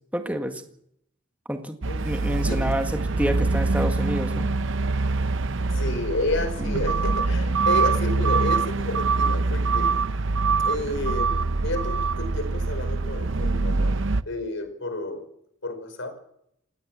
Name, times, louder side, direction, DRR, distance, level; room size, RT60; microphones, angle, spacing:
voice 1, 0.1-0.6 1.5-1.8 2.0-4.5 6.6-6.8, equal, 5° right, 5 dB, 1.8 m, -28 dB
sound 1, 1.8-14.2, right 3 dB, 65° right, 0.8 m, -24 dB
voice 2, 1.9-2.6 5.7-9.9 10.6-14.0 14.2-15.2 15.6-16.2, left 2 dB, 65° left, 8 dB, 5.0 m, -31 dB
18.5 x 18.5 x 7.6 m, 0.71 s
head